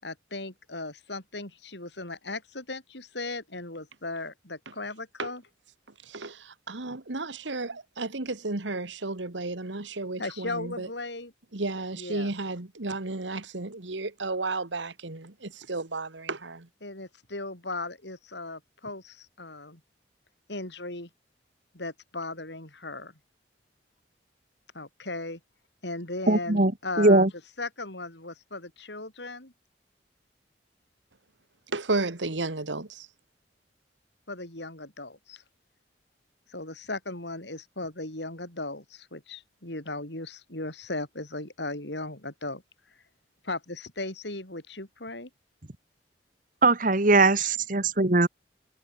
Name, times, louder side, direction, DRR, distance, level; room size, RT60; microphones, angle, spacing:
voice 1, 0.0-5.4 10.2-11.3 12.0-12.3 16.8-19.8 20.5-21.1 21.7-23.1 24.7-25.4 25.8-27.3 27.6-29.5 34.3-35.4 36.5-42.6 43.4-45.3 47.4-47.5, left 2 dB, 70° left, 5.4 m, -37 dB
voice 2, 6.1-10.9 11.5-16.7 31.7-33.1, right 3 dB, 85° right, 1.8 m, -33 dB
voice 3, 26.3-26.7 27.0-27.3 46.6-48.3, right 2 dB, 45° right, 1.8 m, -20 dB
head